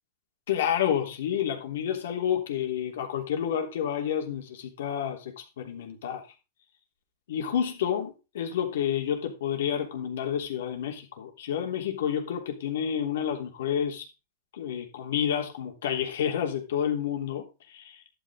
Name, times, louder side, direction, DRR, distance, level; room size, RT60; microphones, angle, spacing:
voice 1, 0.5-6.2 7.3-14.1 14.5-18.0, left 9 dB, 75° left, 4 dB, 3.3 m, -29 dB
11.5 x 9.1 x 3.7 m, 0.28 s
supercardioid pair, 150°, 0 cm